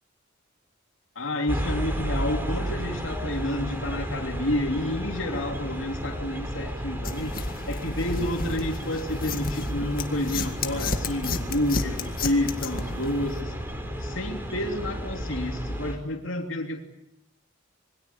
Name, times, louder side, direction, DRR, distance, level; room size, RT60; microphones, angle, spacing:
voice 1, 1.1-7.3 7.7-13.5 14.0-16.8, left 1 dB, 75° left, 2 dB, 3.1 m, -29 dB
sound 1, 1.5-16.0, equal, 10° right, 4.5 m, -33 dB
sound 2, 7.0-13.4, left 3 dB, 45° left, 2.1 m, -33 dB
27.0 x 22.5 x 8.7 m, 0.84 s
head